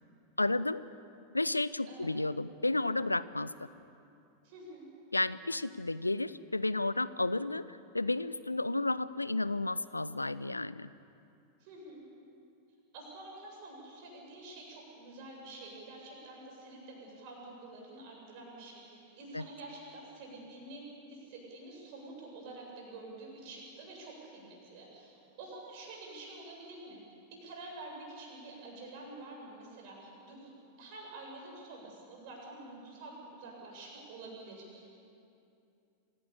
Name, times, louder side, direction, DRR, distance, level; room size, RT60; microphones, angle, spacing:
voice 1, 0.4-0.8 1.3-3.7 5.1-10.9 19.3-19.4, left 2 dB, 85° left, 17 dB, 0.5 m, -32 dB
voice 2, 4.4-4.9 11.6-12.0 12.9-20.8 21.1-27.0 27.3-34.9, right 2 dB, 45° right, -1 dB, 7.9 m, -48 dB
26.0 x 17.0 x 8.6 m, 2.6 s
figure-of-eight pair, 90°, 0 cm